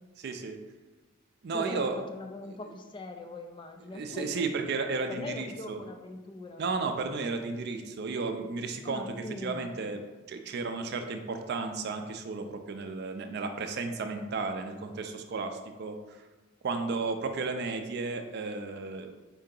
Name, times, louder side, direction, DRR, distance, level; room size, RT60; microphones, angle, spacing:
voice 1, 0.2-0.6 1.4-2.0 2.4-2.6 3.9-5.8 6.6-10.0 10.3-16.2 16.6-19.1, right 4 dB, 55° right, 6 dB, 0.4 m, -33 dB
voice 2, 1.5-4.5 5.1-6.6 8.8-9.8, left 2 dB, 25° left, 5 dB, 0.3 m, -41 dB
4.4 x 2.7 x 3.7 m, 1.2 s
head